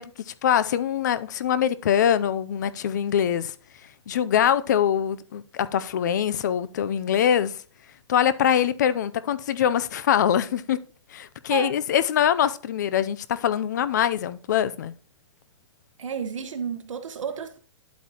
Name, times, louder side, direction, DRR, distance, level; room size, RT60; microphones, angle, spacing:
voice 1, 0.0-3.5 4.1-7.6 8.1-10.8 11.1-14.9, left 9 dB, 35° left, 0.5 m, -23 dB
voice 2, 16.0-17.6, right 7 dB, 75° right, 1.3 m, -32 dB
10.5 x 8.3 x 2.9 m
hypercardioid pair, 170°, 16 cm